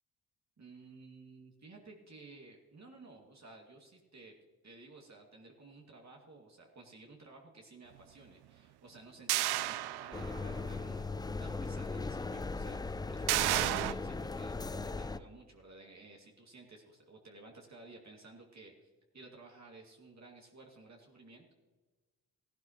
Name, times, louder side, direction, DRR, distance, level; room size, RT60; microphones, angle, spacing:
voice 1, 0.6-4.4 4.6-21.5, right 3 dB, 40° right, 0 dB, 2.3 m, -55 dB
sound 1, 9.3-10.6 11.0-11.1 13.3-13.9, right 15 dB, 65° right, 0.6 m, -31 dB
sound 2, 10.1-15.2, left 3 dB, 10° left, 0.4 m, -38 dB
16.0 x 11.5 x 3.0 m, 1.2 s
hypercardioid pair, 45°, 42 cm